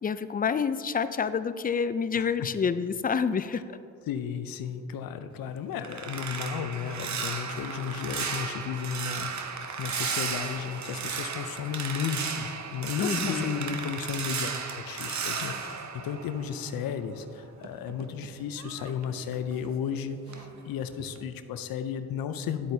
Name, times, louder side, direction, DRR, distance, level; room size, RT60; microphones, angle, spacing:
voice 1, 0.0-3.8 13.0-14.0, left 6 dB, 25° left, 13 dB, 0.4 m, -28 dB
voice 2, 2.1-2.5 4.1-14.5 14.9-22.7, left 7 dB, 85° left, 10 dB, 0.6 m, -34 dB
sound 1, 5.3-16.9 17.3-19.9 20.3-20.6 21.0-21.2, right 6 dB, 55° right, 0.8 m, -35 dB
10.5 x 7.6 x 2.7 m, 2.4 s
cardioid pair, 60°, 34 cm